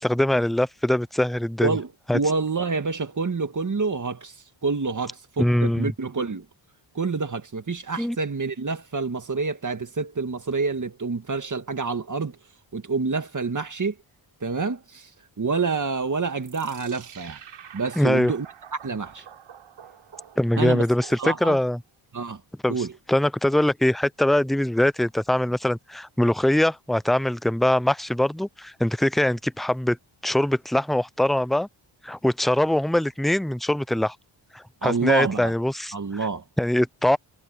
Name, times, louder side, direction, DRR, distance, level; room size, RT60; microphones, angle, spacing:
voice 1, 0.0-1.8 2.1-2.2 5.4-5.9 8.0-8.2 18.0-18.3 20.4-21.8 22.6-22.8 23.1-30.0 30.2-31.7 32.0-34.2 34.5-35.9 36.6-37.2, left 1 dB, ahead, 0.5 m, -22 dB
voice 2, 1.6-6.5 6.9-12.4 12.7-14.0 14.4-15.1 15.4-17.4 17.7-18.5 18.7-19.2 20.6-20.9 21.2-21.6 22.1-22.4 22.7-22.9 34.8-35.5 35.9-36.4, right 4 dB, 40° right, 2.1 m, -27 dB
sound 1, 16.4-21.7, right 9 dB, 90° right, 5.4 m, -47 dB
cardioid pair, 70°, 48 cm